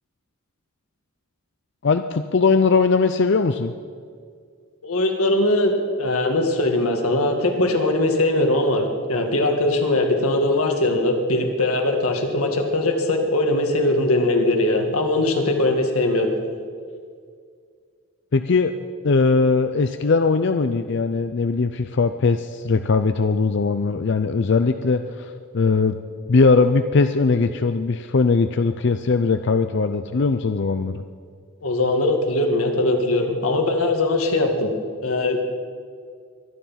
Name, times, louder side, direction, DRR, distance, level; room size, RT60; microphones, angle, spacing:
voice 1, 1.8-3.7 18.3-18.7 19.0-26.0 26.3-30.9, left 4 dB, 55° left, 9 dB, 0.5 m, -20 dB
voice 2, 4.8-16.3 31.6-34.7 35.0-35.4, left 2 dB, 90° left, 4 dB, 2.0 m, -21 dB
23.5 x 9.5 x 5.8 m, 2.1 s
head